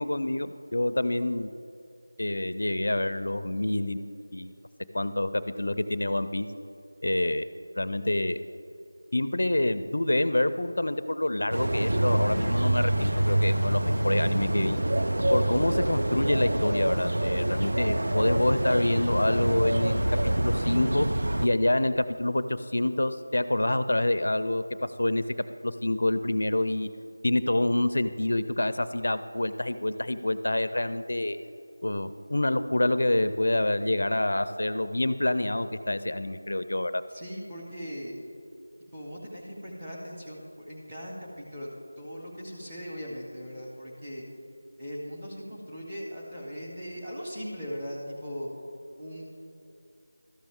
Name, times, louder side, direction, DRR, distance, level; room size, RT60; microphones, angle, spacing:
voice 1, 0.0-1.5 2.2-4.0 4.3-4.5 4.9-6.5 7.0-7.5 7.8-8.4 9.1-14.8 15.3-21.1 21.4-25.2 25.6-26.9 27.2-31.4 31.8-37.0, left 1 dB, 65° left, 12 dB, 0.4 m, -27 dB
sound 1, 11.5-21.5, right 1 dB, 70° right, 0.4 m, -26 dB
voice 2, 37.1-38.2 38.9-41.7 42.0-44.2 44.8-48.5 49.0-49.3, equal, 15° right, -3 dB, 1.3 m, -39 dB
13.0 x 6.1 x 3.6 m, 2.7 s
figure-of-eight pair, 175°, 0 cm